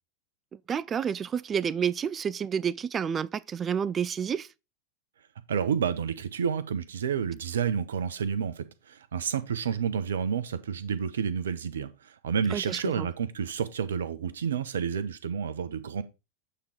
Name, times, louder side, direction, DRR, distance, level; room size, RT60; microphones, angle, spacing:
voice 1, 0.5-4.5 12.5-13.1, right 7 dB, 25° right, 0.3 m, -30 dB
voice 2, 5.5-16.0, right 7 dB, 65° right, 0.8 m, -30 dB
8.4 x 3.8 x 4.4 m
figure-of-eight pair, 90°, 0 cm